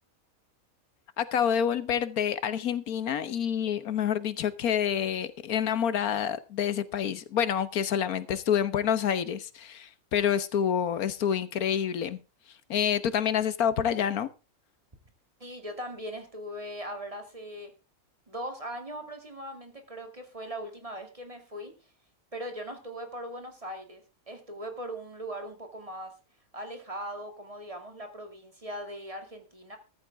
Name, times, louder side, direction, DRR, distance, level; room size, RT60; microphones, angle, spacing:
voice 1, 1.2-12.2 12.7-14.3, left 8 dB, 80° left, 1.5 m, -28 dB
voice 2, 15.4-17.7 18.3-21.7 22.3-26.1 26.5-29.8, equal, 25° right, 2.4 m, -40 dB
14.0 x 13.5 x 3.5 m
omnidirectional pair, 1.5 m